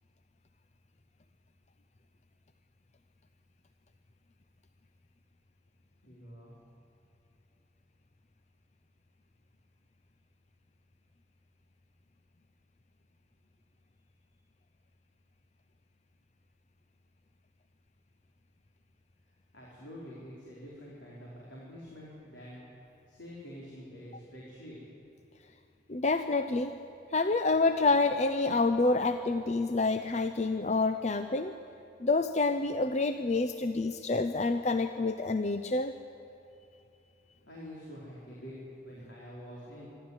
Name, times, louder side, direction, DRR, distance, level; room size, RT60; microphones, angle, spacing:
voice 1, 6.0-6.5 19.5-22.6 23.1-24.8 37.5-39.9, equal, 80° left, -6 dB, 4.5 m, -47 dB
voice 2, 25.9-26.7 27.1-31.5 32.0-35.9, left 3 dB, 40° left, 9 dB, 0.6 m, -28 dB
26.5 x 12.5 x 9.7 m, 2.7 s
head